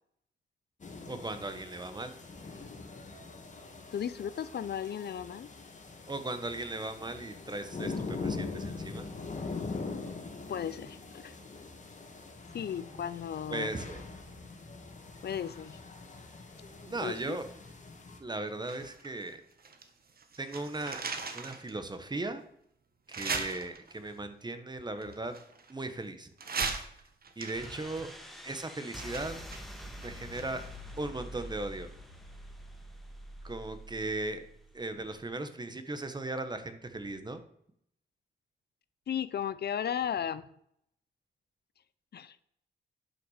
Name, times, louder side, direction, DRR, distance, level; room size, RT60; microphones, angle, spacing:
sound 1, 0.8-18.2, left 4 dB, 40° left, 2.3 m, -42 dB
voice 1, 1.1-2.1 6.1-9.1 13.5-14.0 16.9-17.4 18.2-19.4 20.4-21.0 21.3-22.4 23.1-25.3 25.7-26.3 27.4-28.1 28.4-29.4 30.0-30.6 31.0-31.9 33.4-34.4 34.7-37.4, right 2 dB, 20° right, 9 dB, 1.3 m, -37 dB
voice 2, 3.9-5.5 10.5-11.4 12.5-13.7 15.2-15.8 17.0-17.4 39.1-40.5 42.1-42.4, left 8 dB, 60° left, 15 dB, 0.6 m, -35 dB
sound 2, 18.6-19.9 20.2-21.7 22.2-22.3 23.1-24.1 25.0-26.0 26.4-30.8 31.1-31.2, right 4 dB, 50° right, 1.6 m, -39 dB
sound 3, 27.5-35.2, equal, ahead, 1.8 m, -46 dB
10.5 x 6.0 x 6.6 m, 0.70 s
cardioid pair, 95°, 19 cm